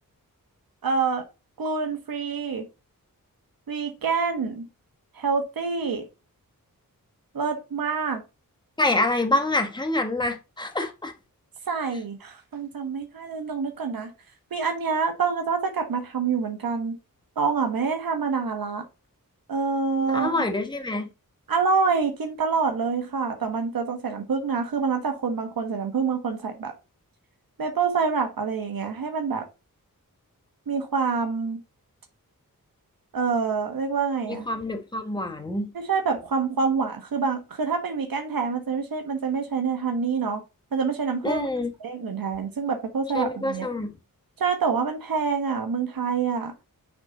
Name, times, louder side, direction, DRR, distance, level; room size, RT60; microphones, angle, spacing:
voice 1, 0.8-1.2 1.6-2.6 3.7-4.7 5.1-6.0 7.3-8.2 11.7-14.1 14.5-17.0 17.4-18.8 19.5-20.5 21.5-26.7 27.6-29.4 30.7-31.6 33.1-34.5 35.7-40.4 40.7-41.5 41.8-43.7 44.4-46.5, right 5 dB, 75° right, 1.3 m, -26 dB
voice 2, 8.8-11.1 20.1-21.1 34.3-35.7 41.2-41.7 43.1-43.9, left 2 dB, 10° left, 1.3 m, -26 dB
6.5 x 5.1 x 3.9 m
wide cardioid pair, 130°, 35 cm